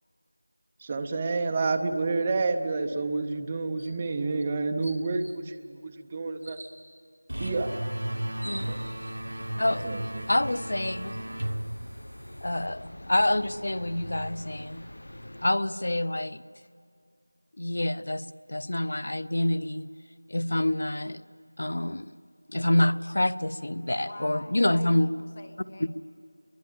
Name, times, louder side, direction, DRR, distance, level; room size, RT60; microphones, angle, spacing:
voice 1, 0.8-6.6 7.4-7.7 8.7-8.8 9.8-10.3, right 3 dB, 10° right, 6 dB, 0.6 m, -29 dB
sound 1, 3.8-4.0 4.4-4.5 4.8-5.4 6.4-6.7 7.9-8.0 8.2-9.1, right 1 dB, 35° right, 4.3 m, -44 dB
sound 2, 7.3-12.7, right 1 dB, 75° right, 0.9 m, -35 dB
sound 3, 8.3-15.5, left 1 dB, 65° left, 0.9 m, -44 dB
voice 2, 9.6-9.9 10.3-11.2 12.4-14.8 15.4-16.4 17.6-19.9 20.3-21.2 21.6-22.1 22.5-25.1 25.8-25.9, left 1 dB, 40° left, 17 dB, 0.7 m, -27 dB
voice 3, 24.0-25.9, left 2 dB, 20° left, 9 dB, 1.0 m, -46 dB
29.5 x 22.5 x 7.4 m, 2.4 s
figure-of-eight pair, 180°, 0 cm